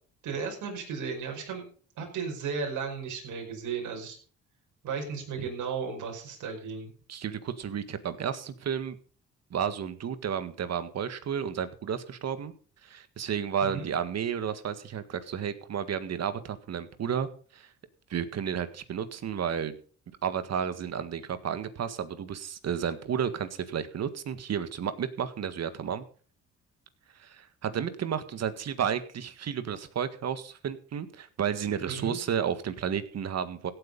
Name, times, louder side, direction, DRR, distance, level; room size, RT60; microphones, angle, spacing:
voice 1, 0.2-1.6 2.0-4.2 4.8-6.9 13.6-13.9 31.9-32.2, right 5 dB, 75° right, 1 dB, 5.3 m, -35 dB
voice 2, 7.1-8.9 9.5-12.5 12.8-17.3 17.5-17.7 18.1-19.8 20.2-26.0 27.2-33.7, right 8 dB, 60° right, 11 dB, 1.8 m, -32 dB
16.5 x 8.4 x 5.4 m, 0.42 s
cardioid pair, 90°, 30 cm